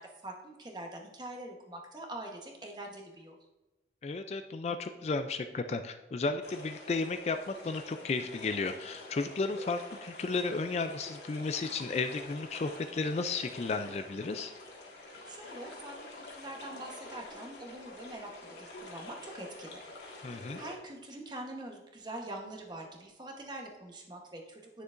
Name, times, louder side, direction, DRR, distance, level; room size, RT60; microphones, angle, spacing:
voice 1, 0.0-3.4 15.0-19.8 20.3-24.8, right 1 dB, 25° right, 1 dB, 1.0 m, -44 dB
voice 2, 4.0-14.5 20.2-20.6, left 3 dB, 35° left, 8 dB, 0.3 m, -33 dB
sound 1, 6.4-20.8, left 2 dB, 85° left, 1.7 m, -47 dB
9.5 x 6.6 x 2.5 m, 1.0 s
head